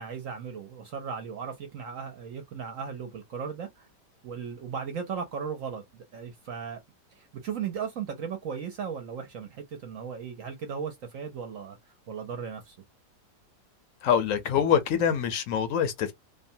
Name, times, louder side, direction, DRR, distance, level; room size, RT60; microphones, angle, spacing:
voice 1, 0.0-3.9 4.2-6.8 7.1-11.8 12.1-12.8, right 6 dB, 65° right, 0.9 m, -36 dB
voice 2, 14.0-16.1, left 8 dB, 70° left, 0.8 m, -25 dB
2.7 x 2.2 x 2.7 m
omnidirectional pair, 1.8 m